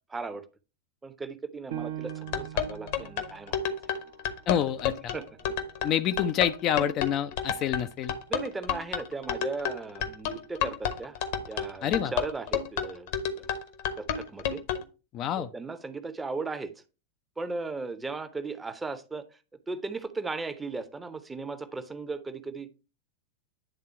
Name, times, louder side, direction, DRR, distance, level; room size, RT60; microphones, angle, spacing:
voice 1, 0.1-0.4 1.0-3.7 5.1-5.3 8.3-11.2 11.5-13.5 13.9-14.6 15.4-16.7 17.4-19.2 19.7-22.9, right 3 dB, 10° right, 0.8 m, -37 dB
Piano, 1.7-6.9 7.4-7.5 8.1-8.6, right 11 dB, 55° right, 0.8 m, -43 dB
sound 1, 2.1-14.8, left 8 dB, 50° left, 1.0 m, -30 dB
voice 2, 4.5-5.1 5.8-8.1 11.8-12.1 15.1-15.5, left 10 dB, 35° left, 0.5 m, -27 dB
10.0 x 3.7 x 4.4 m
figure-of-eight pair, 90°, 0 cm